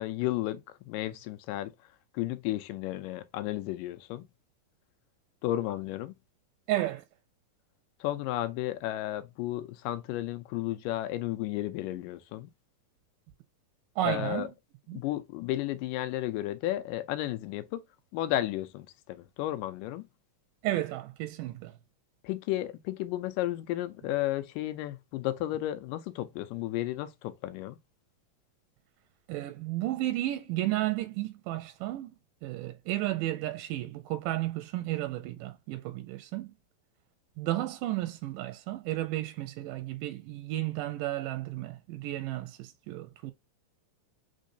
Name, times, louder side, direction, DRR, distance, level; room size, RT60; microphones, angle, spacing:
voice 1, 0.0-1.7 2.1-4.2 5.4-6.1 8.0-12.5 14.0-14.5 14.9-17.9 18.1-20.0 22.2-27.8, left 14 dB, 80° left, 2.1 m, -33 dB
voice 2, 6.7-7.0 14.0-14.5 14.9-15.0 20.6-21.8 29.3-32.1 32.4-36.5 37.4-43.3, right 15 dB, 80° right, 2.0 m, -33 dB
5.3 x 3.6 x 2.6 m
omnidirectional pair, 4.1 m